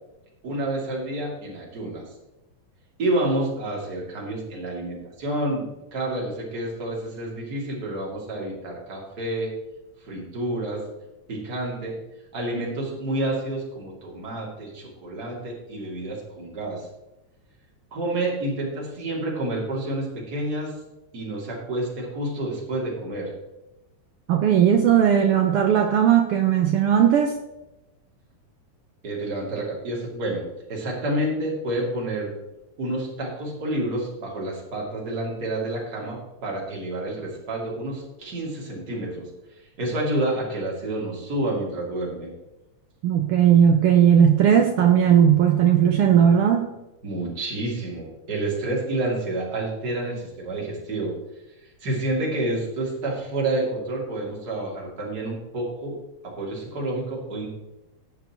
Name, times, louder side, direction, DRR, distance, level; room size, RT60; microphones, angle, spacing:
voice 1, 0.4-2.0 3.0-9.5 10.0-10.8 11.3-11.9 12.3-16.8 17.9-20.7 21.1-23.3 29.0-32.3 32.8-39.3 39.8-42.3 47.0-51.1 51.8-56.0 56.4-57.5, right 1 dB, 35° right, -3 dB, 3.0 m, -29 dB
voice 2, 24.3-27.3 43.0-46.7, right 8 dB, 80° right, 5 dB, 1.3 m, -17 dB
18.5 x 7.5 x 3.0 m, 0.99 s
omnidirectional pair, 3.4 m